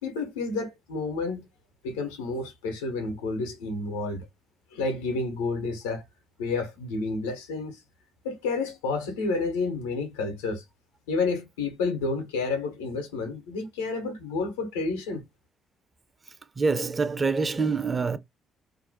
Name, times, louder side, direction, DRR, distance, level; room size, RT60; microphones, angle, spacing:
voice 1, 0.0-1.4 1.8-4.3 4.7-6.0 6.4-7.8 8.2-10.6 11.1-15.2, left 3 dB, 85° left, 0.6 m, -30 dB
voice 2, 16.6-18.2, right 4 dB, 35° right, 0.5 m, -25 dB
2.5 x 2.0 x 2.6 m
hypercardioid pair, 45°, 0 cm